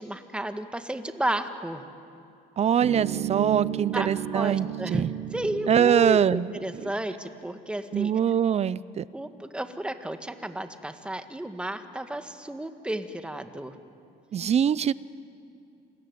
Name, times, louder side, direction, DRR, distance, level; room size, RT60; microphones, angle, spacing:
voice 1, 0.0-1.8 3.9-8.1 9.1-13.8, right 1 dB, 5° right, 8 dB, 1.6 m, -32 dB
voice 2, 2.6-4.7 4.9-5.1 5.7-6.5 7.9-9.1 14.3-14.9, right 9 dB, 40° right, 19 dB, 0.7 m, -23 dB
sound 1, 2.8-6.8, right 11 dB, 90° right, 1.3 m, -33 dB
27.5 x 21.5 x 9.5 m, 2.7 s
cardioid pair, 110°, 17 cm